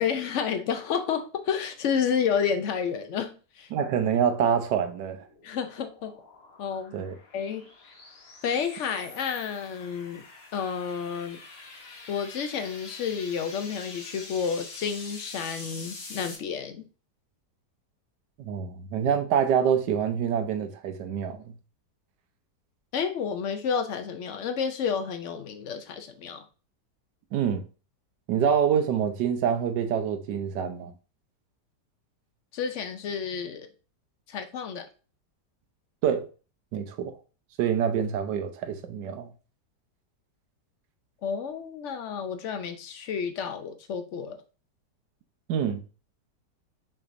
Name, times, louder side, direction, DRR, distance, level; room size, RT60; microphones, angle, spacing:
voice 1, 0.0-3.7 5.4-6.2 6.6-7.0 7.3-7.7 8.4-10.2 10.5-11.4 12.1-16.9 22.9-26.4 32.5-33.7 34.3-34.9 41.2-44.4, left 7 dB, 65° left, 0.7 m, -30 dB
voice 2, 3.7-5.2 6.9-7.1 18.4-21.5 27.3-27.6 28.3-30.9 36.0-36.3 36.7-37.1 37.6-39.3 45.5-45.8, right 8 dB, 85° right, 1.3 m, -26 dB
sound 1, 5.0-16.4, left 3 dB, 45° left, 1.0 m, -45 dB
5.7 x 3.5 x 2.5 m
omnidirectional pair, 1.8 m